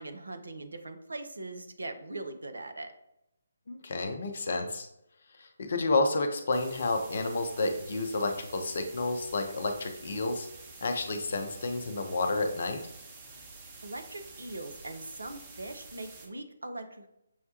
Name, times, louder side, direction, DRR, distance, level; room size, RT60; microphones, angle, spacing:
voice 1, 0.0-2.9 13.8-17.1, right 2 dB, 65° right, 7 dB, 0.5 m, -41 dB
voice 2, 3.7-4.9 5.4-10.5 10.8-12.8, left 2 dB, 50° left, 6 dB, 0.5 m, -30 dB
sound 1, 6.5-16.3, right 3 dB, 20° right, 0.8 m, -49 dB
6.3 x 2.2 x 2.8 m, 0.82 s
figure-of-eight pair, 145°, 0 cm